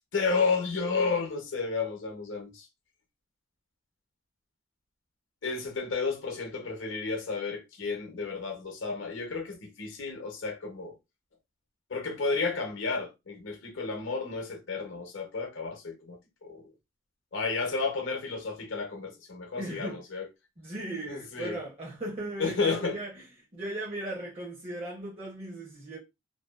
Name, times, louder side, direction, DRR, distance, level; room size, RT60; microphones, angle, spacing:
voice 1, 0.1-2.7 5.4-11.0 11.9-16.6 17.3-20.3 21.1-21.6 22.4-23.0, left 4 dB, 65° left, 0.8 m, -32 dB
voice 2, 19.6-20.0 20.6-23.2 23.5-26.0, right 1 dB, 30° right, 0.7 m, -37 dB
2.6 x 2.3 x 2.3 m
head